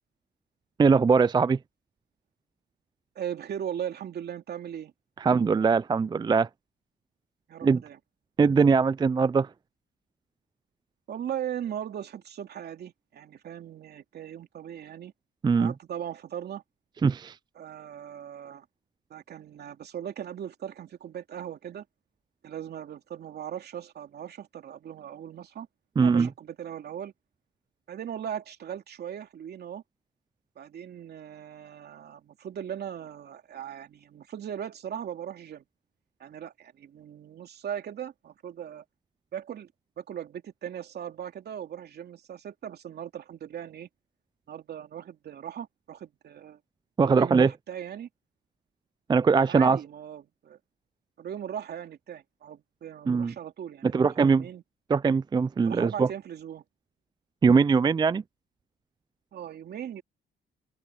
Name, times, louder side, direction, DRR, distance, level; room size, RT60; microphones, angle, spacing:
voice 1, 0.8-1.6 5.2-6.5 7.6-7.8 8.4-9.5 15.4-15.7 17.0-17.3 26.0-26.3 47.0-47.5 49.1-49.8 53.1-53.3 53.8-54.4 54.9-56.1 57.4-58.2, right 5 dB, 25° right, 0.4 m, -21 dB
voice 2, 3.1-4.9 7.5-8.0 11.1-15.1 15.6-16.6 17.5-18.6 19.1-21.8 22.4-25.7 26.0-27.1 27.9-29.8 30.6-35.6 36.2-38.8 39.3-39.7 40.0-43.9 44.5-46.6 47.0-48.1 49.5-50.6 51.2-54.6 55.6-56.6 59.3-60.0, right 9 dB, 65° right, 2.9 m, -38 dB
open air
cardioid pair, 70°, 18 cm